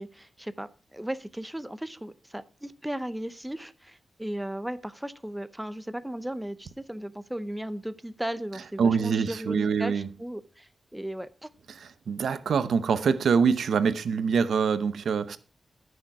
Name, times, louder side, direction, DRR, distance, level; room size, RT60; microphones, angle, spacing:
voice 1, 0.0-11.5, right 1 dB, 5° right, 0.6 m, -36 dB
voice 2, 8.8-10.1 11.7-15.4, right 6 dB, 90° right, 0.8 m, -25 dB
14.5 x 6.6 x 4.7 m
wide cardioid pair, 135°, 0 cm